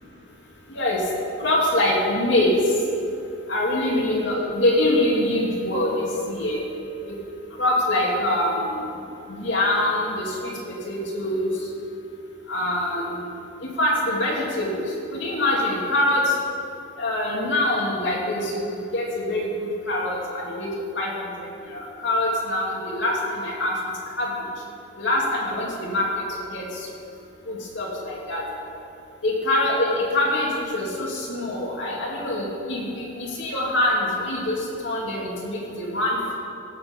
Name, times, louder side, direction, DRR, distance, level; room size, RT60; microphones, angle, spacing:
voice 1, 0.7-1.0 1.4-2.6 3.5-6.6 7.1-7.2 7.6-8.8 9.3-11.5 12.5-13.2 13.6-16.3 17.0-20.7 21.0-21.1 21.7-23.8 24.2-24.3 25.0-26.2 26.5-26.7 27.5-28.5 29.2-36.4, left 1 dB, 60° left, -3 dB, 2.4 m, -24 dB
15.5 x 8.2 x 5.2 m, 2.7 s
head